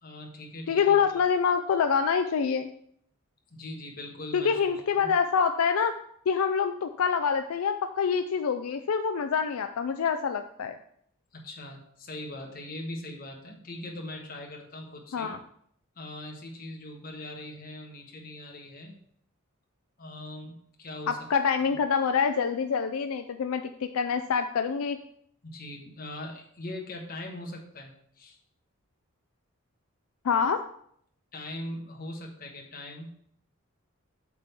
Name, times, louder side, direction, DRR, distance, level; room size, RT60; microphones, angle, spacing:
voice 1, 0.0-1.2 3.5-5.1 11.3-15.3 15.9-18.9 20.0-21.3 21.6-21.7 25.4-28.4 31.3-33.1, left 1 dB, 40° left, 1 dB, 1.3 m, -41 dB
voice 2, 0.7-2.7 4.3-6.0 6.3-10.8 15.1-15.4 21.1-25.0 30.2-30.6, left 6 dB, 75° left, 9 dB, 0.4 m, -26 dB
7.7 x 3.6 x 5.6 m, 0.67 s
head